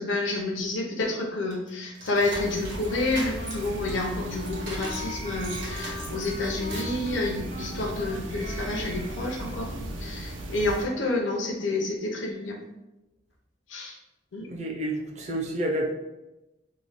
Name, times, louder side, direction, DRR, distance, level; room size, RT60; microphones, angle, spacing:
voice 1, 0.0-12.6 13.7-14.0 14.3-14.5, left 2 dB, 80° left, 0 dB, 0.6 m, -29 dB
sound 1, 1.5-5.1 5.4-7.0, right 1 dB, 70° right, 1.2 m, -39 dB
sound 2, 2.3-10.8, right 1 dB, 85° right, 0.5 m, -37 dB
Wind instrument woodwind instrument, 2.4-9.8, left 2 dB, 35° left, 0.4 m, -42 dB
voice 2, 14.5-15.9, right 1 dB, 35° right, 0 dB, 0.5 m, -29 dB
3.1 x 2.1 x 3.9 m, 0.97 s
head